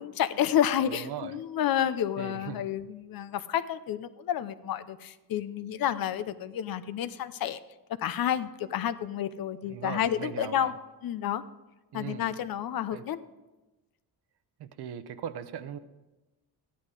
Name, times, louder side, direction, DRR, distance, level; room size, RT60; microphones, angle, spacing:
voice 1, 0.0-7.6 8.0-10.7 11.0-11.4 11.9-13.2, left 10 dB, 60° left, 13 dB, 0.7 m, -30 dB
voice 2, 0.9-1.4 2.2-2.7 9.7-10.7 11.9-12.4 12.9-13.0 14.6-15.8, right 9 dB, 75° right, 11 dB, 0.9 m, -39 dB
13.5 x 10.0 x 4.9 m, 1.1 s
cardioid pair, 125°, 40 cm